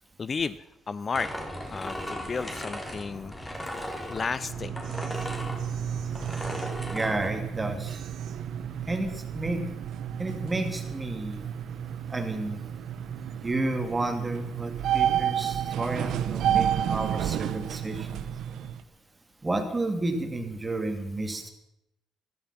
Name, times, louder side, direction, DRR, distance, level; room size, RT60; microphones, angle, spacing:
voice 1, 0.2-0.6 0.9-1.3 1.7-3.3 4.1-4.8, left 5 dB, 40° left, 16 dB, 0.5 m, -32 dB
sound 1, 1.1-7.3, equal, 15° left, 3.6 m, -37 dB
sound 2, 4.4-18.8, right 9 dB, 80° right, 1.0 m, -31 dB
voice 2, 6.9-8.0 8.9-9.6 10.2-11.4 12.1-12.6 13.4-18.2 19.4-21.5, right 2 dB, 20° right, 5 dB, 2.6 m, -31 dB
14.5 x 12.5 x 5.9 m, 0.82 s
cardioid pair, 90°, 0 cm